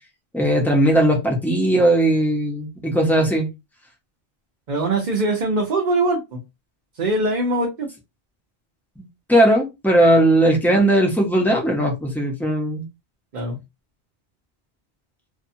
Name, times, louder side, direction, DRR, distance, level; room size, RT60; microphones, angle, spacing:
voice 1, 0.3-3.5 9.0-12.8, right 1 dB, ahead, 0.6 m, -18 dB
voice 2, 4.7-6.4 7.0-7.9 13.3-13.6, right 2 dB, 50° right, 0.8 m, -22 dB
2.7 x 2.2 x 2.6 m
omnidirectional pair, 1.1 m